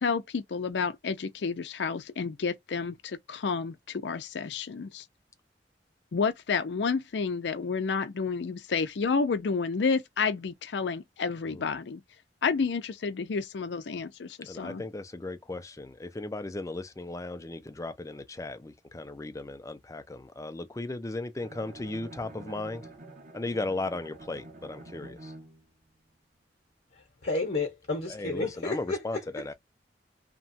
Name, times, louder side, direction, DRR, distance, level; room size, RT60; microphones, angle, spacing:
voice 1, 0.0-5.0 6.1-12.0 12.4-14.8, left 5 dB, 75° left, 0.5 m, -30 dB
voice 2, 14.4-22.8 23.3-25.3 28.1-29.5, left 2 dB, 20° left, 0.4 m, -36 dB
Bowed string instrument, 21.4-25.8, right 2 dB, 45° right, 1.0 m, -47 dB
voice 3, 26.9-29.5, left 3 dB, 55° left, 0.8 m, -32 dB
2.9 x 2.2 x 2.6 m
head